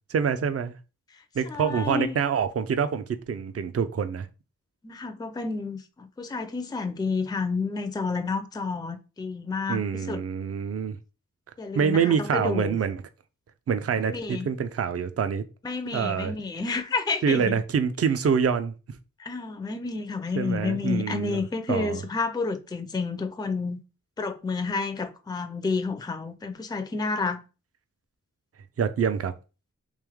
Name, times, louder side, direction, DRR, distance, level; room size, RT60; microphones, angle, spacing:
voice 1, 0.1-0.7 1.4-4.3 9.7-11.0 11.7-13.0 13.7-15.4 15.9-16.3 17.2-18.7 20.4-21.4 21.7-22.0 28.8-29.3, right 7 dB, 50° right, 0.4 m, -26 dB
voice 2, 1.4-2.2 4.8-10.2 11.6-12.8 14.0-14.5 15.6-17.6 19.2-23.8 24.2-27.4, left 4 dB, 15° left, 0.4 m, -30 dB
3.2 x 3.1 x 3.5 m
wide cardioid pair, 110°, 32 cm